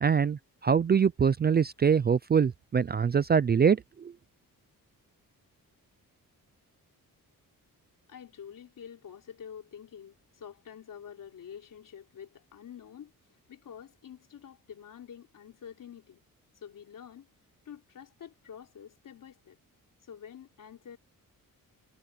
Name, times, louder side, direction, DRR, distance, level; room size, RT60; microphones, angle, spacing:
voice 1, 0.0-4.1, right 6 dB, 30° right, 0.4 m, -24 dB
voice 2, 8.1-13.1 13.5-16.2 16.6-17.3 17.7-19.6 20.0-21.0, left 8 dB, 65° left, 3.6 m, -47 dB
wide cardioid pair, 140°, 35 cm